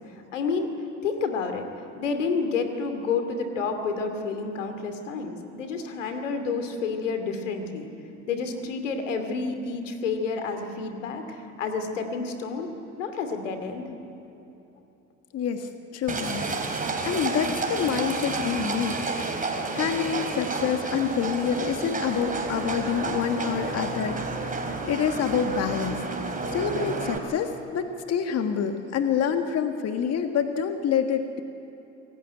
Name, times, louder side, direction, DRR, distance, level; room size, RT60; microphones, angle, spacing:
voice 1, 0.1-0.7 1.0-7.9 8.3-12.7 13.0-13.9, left 4 dB, 80° left, 7 dB, 2.6 m, -29 dB
voice 2, 15.3-19.4 19.7-26.0 26.5-31.4, left 7 dB, 45° left, 7 dB, 1.6 m, -27 dB
Livestock farm animals working animals, 16.1-27.2, right 3 dB, 20° right, 3.8 m, -30 dB
26.5 x 17.0 x 10.0 m, 3.0 s
hypercardioid pair, 70°, 37 cm